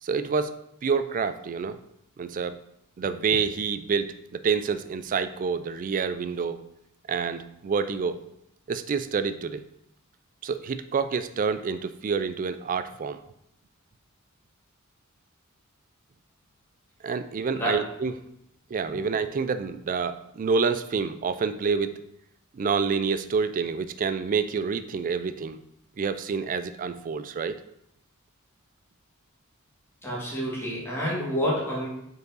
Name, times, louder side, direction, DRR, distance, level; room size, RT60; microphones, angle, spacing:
voice 1, 0.0-1.8 2.2-2.6 3.0-6.6 7.1-8.2 8.7-9.6 10.4-13.2 17.0-18.1 18.7-22.0 22.5-25.6 26.0-27.6, right 5 dB, 40° right, 12 dB, 0.3 m, -28 dB
voice 2, 30.0-31.9, equal, 10° left, -7 dB, 1.9 m, -28 dB
5.3 x 4.7 x 3.9 m, 0.79 s
head